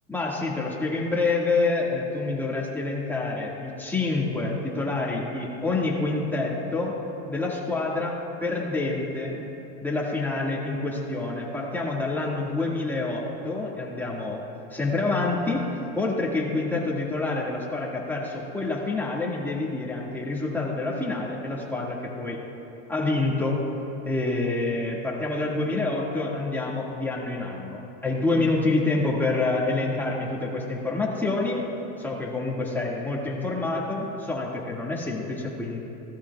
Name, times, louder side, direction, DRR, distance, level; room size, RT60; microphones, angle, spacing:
voice 1, 0.1-6.9 7.3-9.4 9.8-14.4 14.7-15.6 15.9-22.4 22.9-23.6 24.1-31.6 32.0-35.8, left 3 dB, 5° left, -4 dB, 1.8 m, -27 dB
17.0 x 13.0 x 2.3 m, 2.9 s
supercardioid pair, 125°, 37 cm